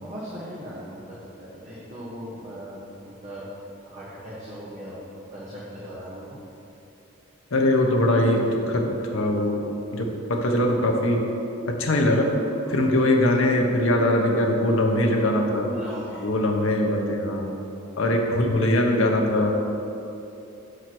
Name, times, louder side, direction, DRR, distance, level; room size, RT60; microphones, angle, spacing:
voice 1, 0.0-3.5 3.8-5.0 5.3-6.4 12.6-12.8 15.6-16.3 17.6-17.7, equal, 35° right, -7 dB, 1.1 m, -38 dB
voice 2, 7.5-9.6 9.9-11.2 11.6-12.3 12.7-15.7 16.2-17.5 18.0-19.5, left 1 dB, 70° left, 1 dB, 1.0 m, -22 dB
7.5 x 5.0 x 6.1 m, 2.9 s
head